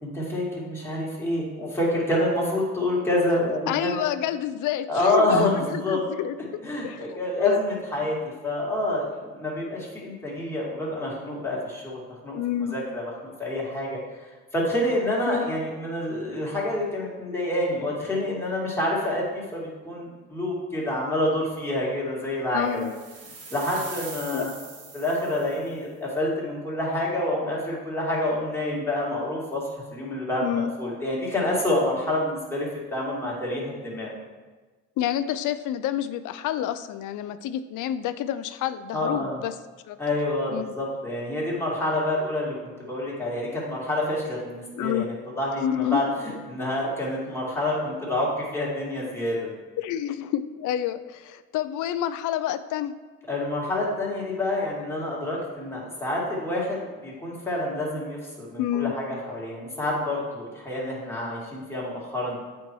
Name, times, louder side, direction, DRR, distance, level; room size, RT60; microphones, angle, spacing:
voice 1, 0.0-3.9 4.9-6.0 6.6-8.2 8.4-12.4 12.7-14.0 14.2-22.9 23.5-24.5 24.9-34.1 38.9-39.4 40.0-49.5 53.3-62.4, left 1 dB, 10° left, -5 dB, 2.4 m, -28 dB
voice 2, 3.7-7.6 12.3-12.8 15.3-15.5 22.5-22.9 24.3-24.5 30.4-30.7 35.0-39.5 39.9-40.0 40.5-40.8 44.8-45.0 45.6-46.1 49.8-52.9 58.6-59.0, left 11 dB, 80° left, 12 dB, 0.5 m, -28 dB
sound 1, 22.7-25.7, right 4 dB, 50° right, 1.5 m, -42 dB
8.2 x 4.5 x 4.6 m, 1.3 s
cardioid pair, 90°, 30 cm